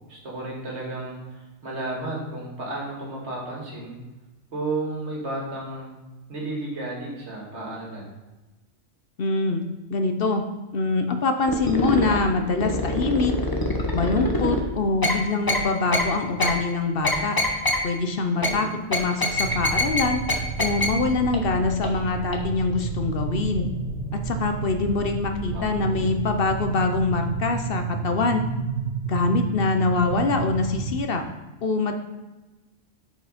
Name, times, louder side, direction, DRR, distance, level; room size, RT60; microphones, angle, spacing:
voice 1, 0.1-4.0 4.5-5.9 6.3-8.1 18.4-18.7 25.5-26.1, right 2 dB, 65° right, -2 dB, 2.1 m, -33 dB
voice 2, 9.2-9.6 9.9-10.5 10.7-13.3 13.9-17.4 17.8-20.2 20.6-23.7 24.1-28.4 29.1-31.2 31.6-31.9, left 3 dB, 55° left, 6 dB, 0.8 m, -24 dB
sound 1, 11.5-12.2 12.6-14.6 15.0-15.1 15.5-15.6 15.9-16.0 16.4-16.5 17.0-17.8 18.4-18.5 18.9-20.0 20.3-20.4 20.6-20.9 21.3-21.4 21.8-21.9 22.3-22.4, left 2 dB, 20° left, 0.8 m, -23 dB
sound 2, 19.3-31.0, right 4 dB, 35° right, 2.1 m, -31 dB
6.8 x 4.9 x 4.9 m, 1.1 s
omnidirectional pair, 1.2 m